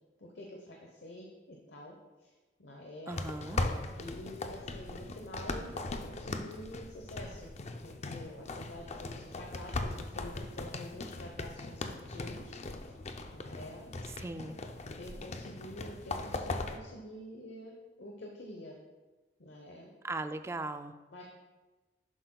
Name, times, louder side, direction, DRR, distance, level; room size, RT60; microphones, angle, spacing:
voice 1, 0.2-2.3 2.6-3.2 4.0-7.5 7.8-12.9 13.3-13.9 15.0-17.7 18.0-18.8 19.4-19.9 21.1-21.2, left 1 dB, 70° left, 1 dB, 0.9 m, -47 dB
sound 1, 3.1-16.8, left 2 dB, 40° left, 0.5 m, -39 dB
voice 2, 3.1-3.6 14.1-14.6 20.0-20.9, right 2 dB, 15° right, 9 dB, 0.3 m, -38 dB
11.0 x 7.6 x 2.3 m, 1.2 s
head